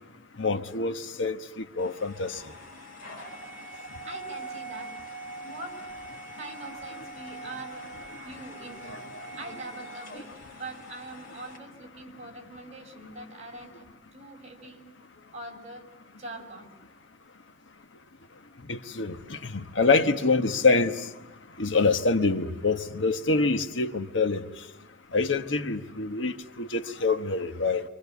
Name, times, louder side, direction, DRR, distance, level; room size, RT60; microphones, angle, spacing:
voice 1, 0.4-2.4 8.9-9.0 18.7-20.9 21.6-24.4 25.1-27.8, left 3 dB, 70° left, 1.2 m, -26 dB
sound 1, 1.8-11.6, right 2 dB, 45° left, 5.5 m, -43 dB
voice 2, 4.0-4.9 5.4-7.9 8.2-9.0 9.3-13.9 14.1-14.8 15.3-15.9 16.1-16.7, right 2 dB, 35° right, 5.7 m, -43 dB
28.0 x 25.5 x 8.3 m
head